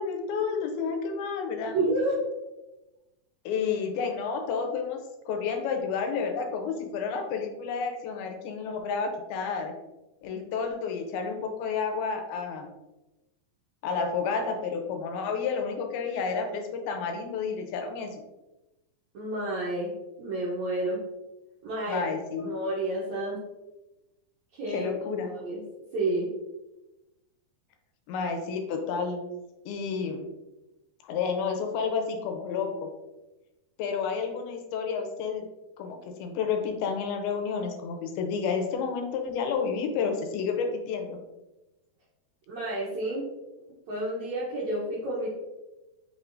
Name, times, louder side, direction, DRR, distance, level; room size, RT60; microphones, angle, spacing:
voice 1, 0.0-1.8 3.5-9.7 10.2-12.7 13.8-18.2 21.9-22.5 24.7-25.3 28.1-29.2 29.7-30.3 31.0-32.9 33.8-35.4 35.8-41.2, left 5 dB, 80° left, 4 dB, 2.4 m, -30 dB
voice 2, 1.7-2.2 19.1-19.9 20.2-21.0 21.6-22.0 22.4-23.4 24.5-24.9 25.2-25.6 25.9-26.3 42.5-43.2 43.9-45.3, right 1 dB, 75° right, -7 dB, 1.7 m, -30 dB
5.5 x 3.4 x 2.5 m, 1.0 s
omnidirectional pair, 4.4 m